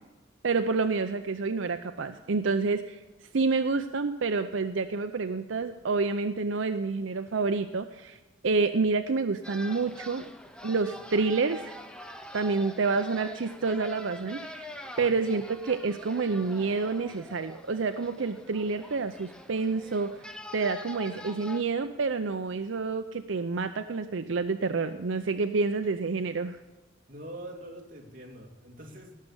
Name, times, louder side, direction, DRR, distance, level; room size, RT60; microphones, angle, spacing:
voice 1, 0.4-10.2 10.6-11.7 12.3-14.7 15.0-26.6, right 4 dB, 80° right, 8 dB, 0.6 m, -28 dB
sound 1, 9.4-21.6, equal, 5° left, 0.8 m, -45 dB
voice 2, 27.1-29.1, right 1 dB, 45° right, 0 dB, 2.6 m, -44 dB
18.0 x 6.6 x 7.2 m, 1.2 s
head